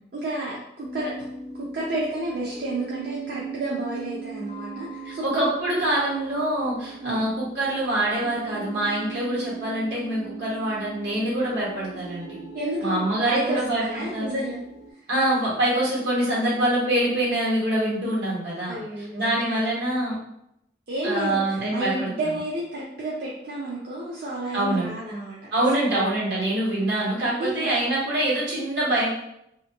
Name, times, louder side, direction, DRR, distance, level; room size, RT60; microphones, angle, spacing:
voice 1, 0.1-1.1 1.5-5.4 7.0-7.3 12.5-14.6 18.7-19.6 20.9-25.5 25.9-26.1 27.4-27.7, right 1 dB, 55° right, -5 dB, 0.4 m, -31 dB
sound 1, 0.8-14.9, right 6 dB, 20° left, 0.4 m, -40 dB
voice 2, 5.2-12.4 12.8-14.4 15.1-18.8 19.1-20.1 21.0-22.1 24.5-24.9 25.5-29.1, right 1 dB, 70° right, -6 dB, 1.2 m, -25 dB
2.5 x 2.5 x 2.6 m, 0.79 s
head